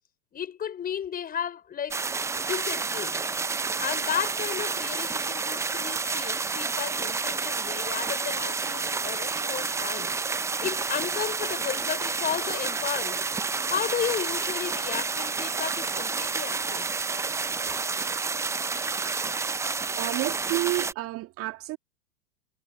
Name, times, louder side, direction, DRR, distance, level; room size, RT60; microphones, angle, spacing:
voice 1, 0.3-2.0 2.4-3.2 3.8-10.1 10.6-13.2 13.7-16.9, left 8 dB, 15° left, 6.3 m, -33 dB
sound 1, 1.9-20.9, right 4 dB, 5° right, 1.0 m, -29 dB
voice 2, 20.0-21.8, right 18 dB, 25° right, 2.4 m, -30 dB
figure-of-eight pair, 110°, 49 cm